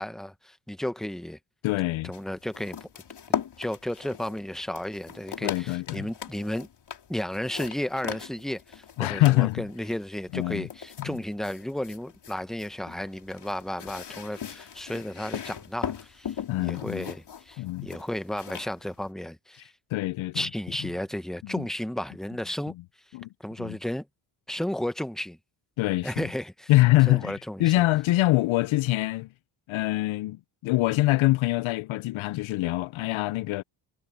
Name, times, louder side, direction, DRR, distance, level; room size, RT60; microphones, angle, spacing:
voice 1, 0.0-1.4 2.0-2.9 3.6-6.7 7.1-19.7 20.3-22.7 23.4-24.0 24.5-25.4 26.0-26.7 27.1-27.9, left 1 dB, ahead, 1.0 m, -33 dB
voice 2, 1.6-2.1 5.4-6.1 9.0-9.6 10.3-10.7 11.0-11.2 16.5-17.1 17.6-17.9 19.9-20.4 21.4-21.6 23.1-23.3 23.6-23.8 25.8-26.3 26.7-27.3 27.6-29.3 29.7-33.6, left 18 dB, 75° left, 0.5 m, -24 dB
sound 1, 2.1-19.1, left 8 dB, 55° left, 3.0 m, -39 dB
cardioid pair, 70°, 48 cm